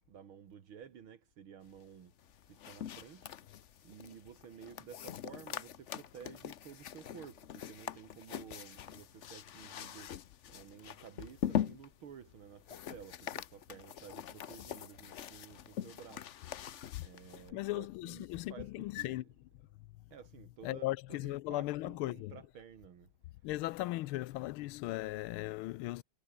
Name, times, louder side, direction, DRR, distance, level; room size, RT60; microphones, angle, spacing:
voice 1, 0.1-2.1 2.5-3.3 3.8-10.1 10.5-16.3 17.0-19.2 20.1-23.1, right 8 dB, 80° right, 2.6 m, -53 dB
sound 1, 2.2-17.5, left 10 dB, 65° left, 0.7 m, -43 dB
voice 2, 17.5-19.2 20.6-22.4 23.4-26.0, left 17 dB, 90° left, 1.5 m, -37 dB
omnidirectional pair, 2.3 m